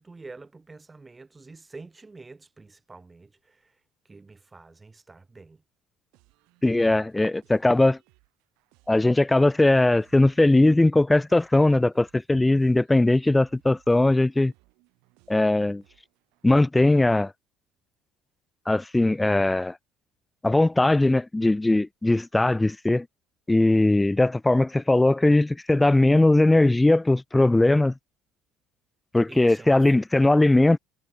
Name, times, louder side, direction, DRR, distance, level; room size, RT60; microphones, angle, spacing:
voice 1, 0.0-3.7 4.1-5.6 29.3-29.8, right 3 dB, 20° right, 4.6 m, -47 dB
sound 1, 6.1-16.5, right 27 dB, 70° right, 8.0 m, -64 dB
voice 2, 6.6-8.0 8.9-14.5 15.3-15.8 16.4-17.3 18.7-19.7 20.4-23.1 23.5-27.9 29.1-30.8, left 2 dB, 10° left, 0.4 m, -20 dB
hypercardioid pair, 60°, 0 cm